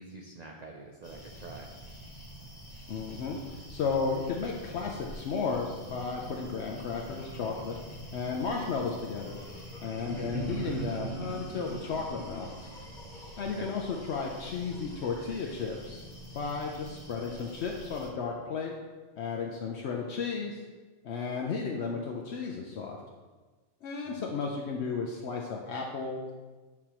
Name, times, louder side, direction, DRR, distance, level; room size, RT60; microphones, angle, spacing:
voice 1, 0.0-1.7 13.6-13.7 24.0-24.3, right 3 dB, 50° right, 1 dB, 0.5 m, -46 dB
sound 1, 1.0-18.1, equal, 20° left, 0.9 m, -47 dB
voice 2, 2.9-3.4 3.7-7.8 8.1-9.4 9.8-12.7 13.4-16.0 16.3-18.7 19.2-20.6 21.0-23.0 23.8-26.3, left 5 dB, 70° left, 0 dB, 0.9 m, -34 dB
sound 2, 7.1-15.7, equal, 40° left, 1.4 m, -53 dB
sound 3, 9.9-13.2, right 5 dB, 75° right, 0.9 m, -40 dB
9.0 x 4.8 x 2.9 m, 1.3 s
omnidirectional pair, 1.2 m